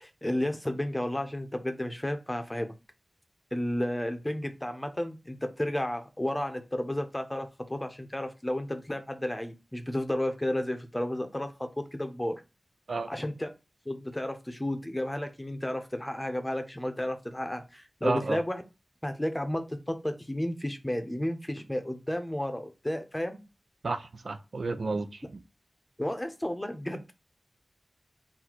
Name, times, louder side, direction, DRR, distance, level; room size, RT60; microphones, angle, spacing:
voice 1, 0.0-2.7 3.5-12.4 13.1-13.5 13.9-18.6 19.0-23.4 26.0-27.1, left 1 dB, 15° left, 0.7 m, -32 dB
voice 2, 18.0-18.4 23.8-25.1, right 3 dB, 80° right, 0.4 m, -31 dB
4.0 x 2.2 x 4.5 m
wide cardioid pair, 65°, 0 cm